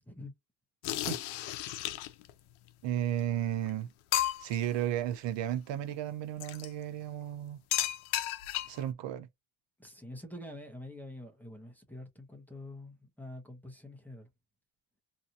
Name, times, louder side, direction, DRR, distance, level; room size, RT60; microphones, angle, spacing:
sound 1, 0.8-2.3 3.2-3.3 3.7-3.8 4.1-4.7 6.4-6.7 7.7-8.9, left 14 dB, 90° left, 0.6 m, -33 dB
voice 1, 2.8-3.9 4.4-7.6 8.7-9.3, right 11 dB, 65° right, 0.5 m, -33 dB
voice 2, 9.8-14.3, left 1 dB, 5° left, 0.7 m, -46 dB
2.8 x 2.4 x 2.6 m
cardioid pair, 135°, 48 cm